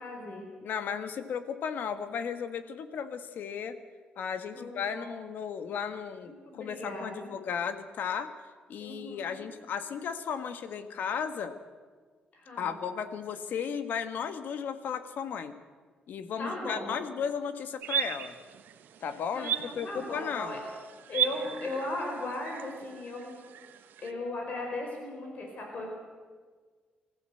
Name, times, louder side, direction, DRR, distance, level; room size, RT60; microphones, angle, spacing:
voice 1, 0.0-0.5 4.5-5.1 6.2-7.3 8.8-9.4 12.3-12.8 16.4-17.0 19.3-20.6 21.1-23.4 24.0-25.9, left 2 dB, 50° left, 1 dB, 4.9 m, -37 dB
voice 2, 0.6-3.8 4.2-8.3 8.7-11.5 12.6-15.5 16.1-18.3 19.0-20.6, left 7 dB, 70° left, 10 dB, 1.6 m, -35 dB
sound 1, 17.8-24.1, right 10 dB, 85° right, 1.2 m, -36 dB
24.5 x 15.0 x 7.8 m, 1.5 s
cardioid pair, 125°, 3 cm